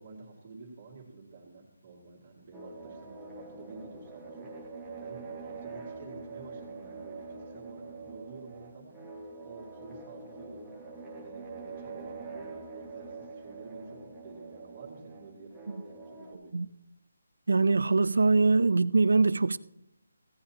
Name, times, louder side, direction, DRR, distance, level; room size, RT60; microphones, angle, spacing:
voice 1, 0.0-4.5 5.0-8.9 9.4-10.8 11.2-16.5, right 3 dB, 25° right, 2.2 m, -49 dB
sound 1, 2.5-16.3, right 4 dB, 5° right, 0.9 m, -44 dB
voice 2, 17.5-19.6, right 3 dB, 80° right, 0.5 m, -23 dB
16.5 x 10.5 x 2.9 m
hypercardioid pair, 180°, 0 cm